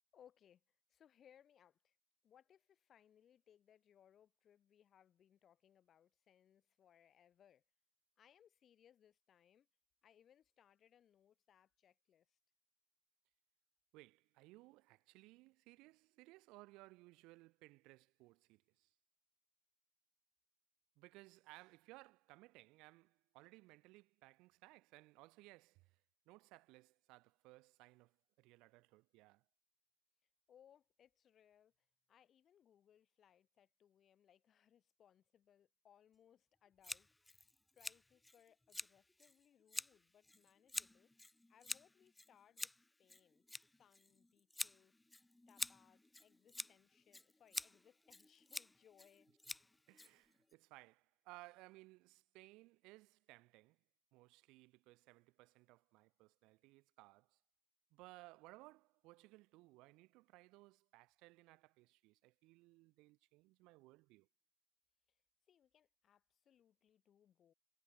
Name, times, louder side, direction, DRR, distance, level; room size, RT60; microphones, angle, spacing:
voice 1, 0.1-2.0 2.2-7.6 8.2-9.7 10.0-12.4 30.5-31.7 32.1-37.1 37.7-41.1 41.5-42.7 43.0-44.9 45.5-49.3 65.5-67.5, left 9 dB, 35° left, 7.7 m, -70 dB
voice 2, 13.9-18.9 21.0-29.4 49.5-49.6 49.9-53.8 54.1-57.4 57.9-64.3, right 22 dB, 65° right, 3.3 m, -62 dB
Scissors, 36.8-50.5, left 2 dB, 5° left, 1.6 m, -49 dB
cardioid pair, 135°, 0 cm